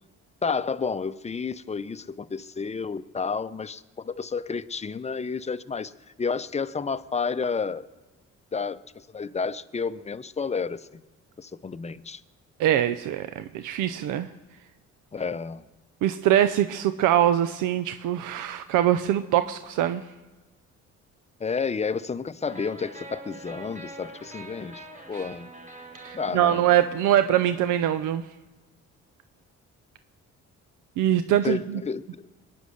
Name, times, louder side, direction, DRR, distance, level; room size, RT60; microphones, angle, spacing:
voice 1, 0.4-5.9 6.2-7.9 8.5-11.0 11.4-12.2 15.1-15.6 21.4-25.5 26.1-26.6 31.4-32.0, left 5 dB, 20° left, 14 dB, 0.6 m, -31 dB
voice 2, 12.6-14.3 16.0-20.0 26.0-28.2 31.0-31.8, right 11 dB, 90° right, 11 dB, 0.6 m, -23 dB
sound 1, 22.5-28.2, right 2 dB, 25° right, 4.0 m, -45 dB
22.0 x 9.6 x 6.5 m, 1.2 s
cardioid pair, 90°, 30 cm